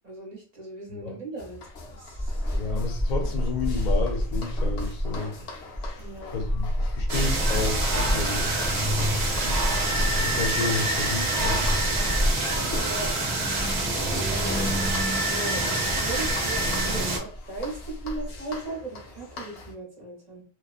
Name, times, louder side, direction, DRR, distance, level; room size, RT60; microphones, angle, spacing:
voice 1, 0.0-1.6 1.9-2.8 6.0-6.4 12.5-13.1 14.3-14.8 15.3-20.4, right 2 dB, 40° right, -2 dB, 0.9 m, -38 dB
sound 1, 1.4-19.7, left 3 dB, 80° left, 0.9 m, -43 dB
sound 2, 1.7-18.5, equal, 15° left, 0.6 m, -30 dB
voice 2, 2.6-5.3 6.3-8.5 10.0-11.6, left 4 dB, 50° left, 2 dB, 0.8 m, -31 dB
sound 3, 7.1-17.2, right 2 dB, 80° right, 0.9 m, -26 dB
2.9 x 2.2 x 2.4 m, 0.40 s
omnidirectional pair, 1.1 m